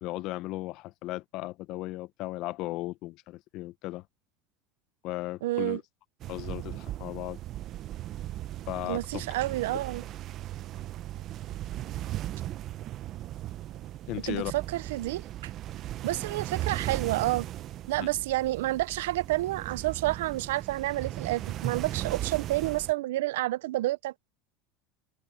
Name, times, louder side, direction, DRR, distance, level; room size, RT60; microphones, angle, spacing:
voice 1, 0.0-4.0 5.0-5.8 6.3-7.4 8.7-9.2 14.1-14.5 18.0-18.1, left 18 dB, 60° left, 0.8 m, -36 dB
voice 2, 5.4-5.8 8.9-10.0 14.3-15.5 16.0-17.5 17.9-24.1, right 17 dB, 85° right, 0.6 m, -29 dB
sound 1, 6.2-22.9, right 13 dB, 45° right, 0.8 m, -37 dB
open air
supercardioid pair, 120°, 0 cm